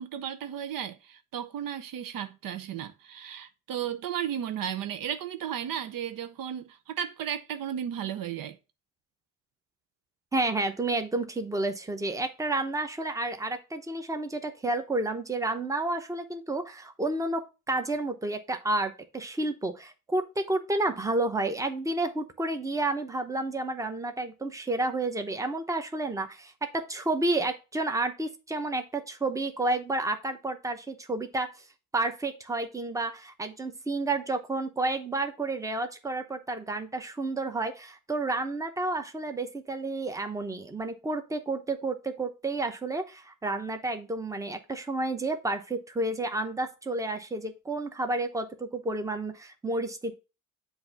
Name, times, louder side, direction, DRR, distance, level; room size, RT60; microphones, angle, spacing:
voice 1, 0.0-8.6, right 9 dB, 75° right, 0.7 m, -34 dB
voice 2, 10.3-31.5 31.9-50.1, right 2 dB, 10° right, 0.8 m, -30 dB
7.7 x 2.7 x 5.7 m
cardioid pair, 115°, 34 cm